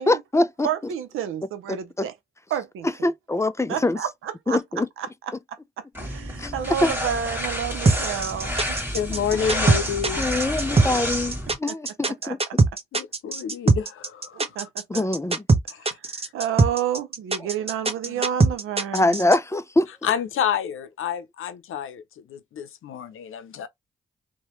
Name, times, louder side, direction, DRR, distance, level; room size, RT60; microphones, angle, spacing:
voice 1, 0.0-0.7 1.7-2.1 3.0-4.0 4.5-4.9 6.4-6.5 6.8-6.9 10.2-12.4 14.9-15.4 18.9-19.9, left 2 dB, 15° left, 0.4 m, -23 dB
voice 2, 0.6-2.1 2.5-2.9 3.7-4.6 5.0-5.3 6.0-8.8 11.7-11.8 12.0-12.4 14.3-15.1 15.8-15.9 16.3-19.2, right 9 dB, 90° right, 0.5 m, -30 dB
sound 1, 5.9-11.5, equal, 10° right, 1.4 m, -29 dB
sound 2, 7.8-19.4, right 3 dB, 30° right, 0.7 m, -21 dB
voice 3, 8.9-10.3 12.9-14.7 15.7-16.2 18.0-18.1 20.0-23.7, left 8 dB, 80° left, 0.6 m, -29 dB
3.0 x 2.2 x 3.0 m
supercardioid pair, 45°, 21 cm